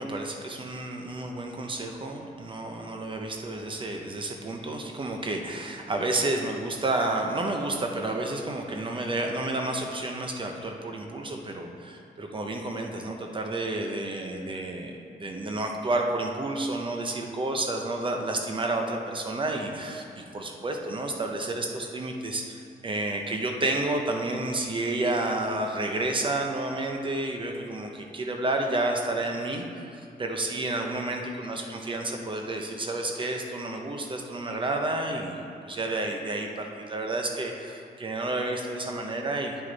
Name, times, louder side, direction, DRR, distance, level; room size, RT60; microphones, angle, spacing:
voice 1, 0.0-39.6, right 2 dB, 30° right, 2 dB, 0.7 m, -30 dB
9.2 x 6.3 x 4.0 m, 2.5 s
wide cardioid pair, 140°, 16 cm